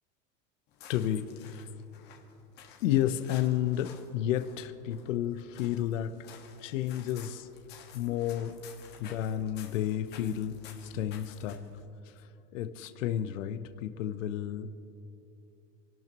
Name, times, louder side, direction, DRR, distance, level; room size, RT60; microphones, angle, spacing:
sound 1, 0.7-11.8, left 7 dB, 25° left, 1.6 m, -53 dB
voice 1, 0.9-1.7 2.8-6.1 6.6-7.5 7.9-8.5 9.0-10.5 10.8-11.6 12.2-12.3 12.5-14.7, left 11 dB, 75° left, 9 dB, 0.9 m, -31 dB
27.5 x 12.0 x 3.0 m, 2.7 s
supercardioid pair, 175°, 39 cm